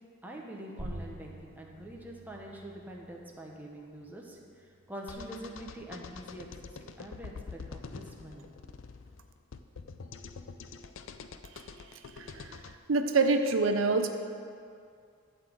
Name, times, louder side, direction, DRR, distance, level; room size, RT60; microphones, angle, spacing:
voice 1, 0.2-8.5, right 1 dB, 10° right, -1 dB, 1.0 m, -45 dB
sound 1, 0.8-5.9, right 1 dB, 55° right, 1.6 m, -48 dB
sound 2, 5.1-12.8, left 5 dB, 75° left, 0.5 m, -46 dB
voice 2, 12.2-12.6 12.9-14.1, right 3 dB, 85° right, 6 dB, 0.6 m, -26 dB
12.0 x 4.2 x 7.8 m, 2.3 s
head